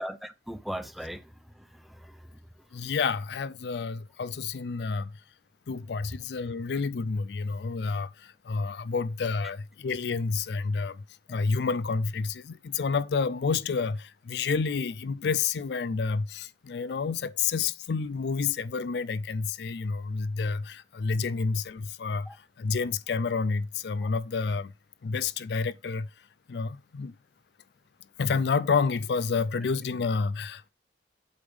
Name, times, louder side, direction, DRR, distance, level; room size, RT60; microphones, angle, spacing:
voice 1, 0.0-2.4 2.7-2.9 22.3-22.4, equal, ahead, 0.5 m, -39 dB
voice 2, 2.7-5.1 5.7-11.0 11.3-22.3 22.6-24.7 25.0-26.1 26.5-27.1 28.2-30.7, left 5 dB, 75° left, 0.4 m, -29 dB
8.1 x 3.5 x 5.2 m
head